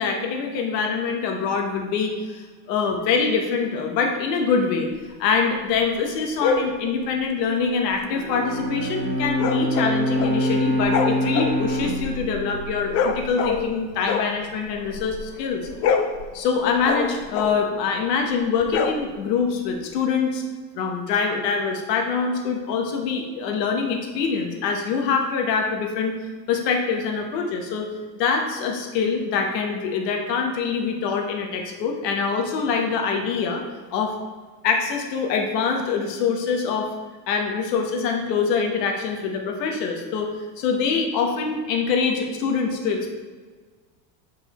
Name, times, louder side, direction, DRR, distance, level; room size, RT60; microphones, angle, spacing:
voice 1, 0.0-2.4 2.7-4.9 5.2-15.7 16.3-20.4 20.7-26.1 26.5-27.9 28.2-33.6 33.9-34.1 34.6-36.9 37.3-40.3 40.6-43.1, left 5 dB, 85° left, 2 dB, 1.2 m, -24 dB
sound 1, 6.4-6.8 9.4-10.5 10.8-13.8 14.0-15.3 15.6-17.7 18.6-19.4, left 5 dB, 35° left, 0.4 m, -26 dB
Bowed string instrument, 8.1-13.6, equal, 25° right, 0.8 m, -26 dB
8.7 x 4.8 x 3.0 m, 1.4 s
supercardioid pair, 140°, 48 cm